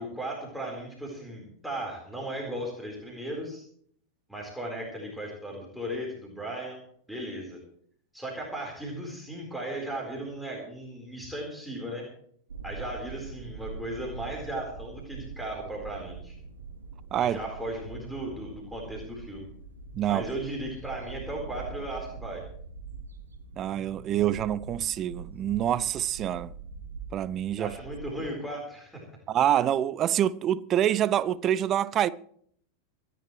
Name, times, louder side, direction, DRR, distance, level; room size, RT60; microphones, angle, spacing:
voice 1, 0.0-3.6 4.3-6.8 7.1-7.6 8.1-12.0 12.6-16.3 17.2-19.5 20.1-22.4 27.6-29.0, right 1 dB, ahead, 4.2 m, -36 dB
sound 1, 12.5-28.3, right 4 dB, 70° right, 2.7 m, -43 dB
voice 2, 20.0-20.3 23.6-26.5 27.1-27.7 29.3-32.1, right 11 dB, 30° right, 0.5 m, -26 dB
26.5 x 11.0 x 3.2 m
figure-of-eight pair, 90°, 0 cm